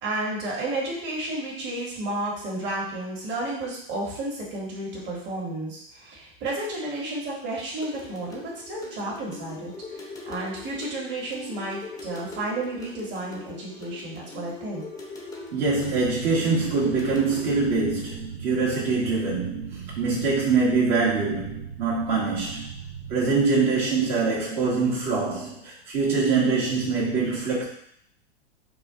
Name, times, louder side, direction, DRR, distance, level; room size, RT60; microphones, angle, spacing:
voice 1, 0.0-14.8, right 2 dB, 35° right, -4 dB, 1.8 m, -32 dB
sound 1, 7.8-17.7, left 3 dB, 10° left, 0.7 m, -41 dB
voice 2, 15.5-22.7 23.1-27.6, right 4 dB, 50° right, -7 dB, 1.7 m, -24 dB
sound 2, 15.7-23.3, right 7 dB, 70° right, 0.9 m, -39 dB
4.8 x 2.4 x 3.7 m, 0.68 s
hypercardioid pair, 120°, 31 cm